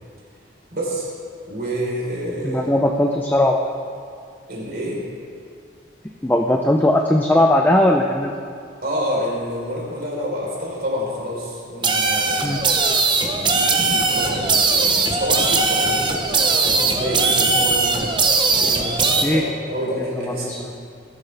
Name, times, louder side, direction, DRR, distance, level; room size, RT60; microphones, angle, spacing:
voice 1, 0.7-1.1 1.5-2.7 4.5-5.0 8.8-12.8 13.1-20.7, equal, 50° right, -4 dB, 4.1 m, -28 dB
voice 2, 2.4-3.6 6.2-8.3 12.4-12.6 19.2-19.4 20.3-20.7, left 1 dB, 10° left, 2 dB, 0.5 m, -18 dB
sound 1, 11.8-19.2, right 3 dB, 25° right, 0.9 m, -19 dB
19.5 x 12.0 x 3.4 m, 2.3 s
head